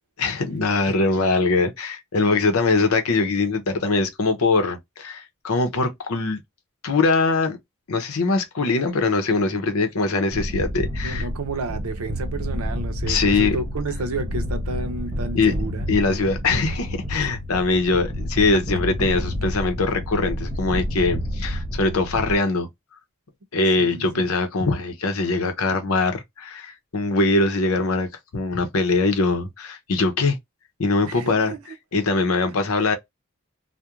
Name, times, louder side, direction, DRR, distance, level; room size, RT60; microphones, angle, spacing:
voice 1, 0.2-6.4 6.8-7.6 7.9-11.2 13.1-13.6 15.3-15.5 15.9-22.7 23.5-28.1 28.3-30.4 30.8-31.5 31.9-33.0, left 3 dB, 75° left, 0.7 m, -22 dB
sound 1, 10.3-22.3, equal, 40° right, 1.2 m, -29 dB
voice 2, 10.9-15.9 23.8-24.3 31.0-31.7, right 3 dB, 75° right, 0.6 m, -31 dB
2.4 x 2.1 x 2.9 m
head